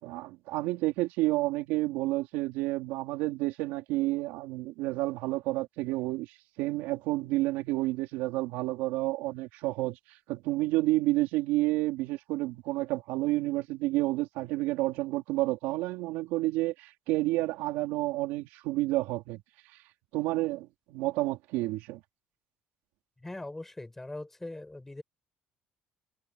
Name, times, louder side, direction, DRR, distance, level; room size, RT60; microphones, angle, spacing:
voice 1, 0.0-10.0 10.3-19.4 20.1-22.0, right 19 dB, 85° right, 3.4 m, -30 dB
voice 2, 23.2-25.0, left 2 dB, 10° left, 7.1 m, -41 dB
cardioid pair, 120°, 3 cm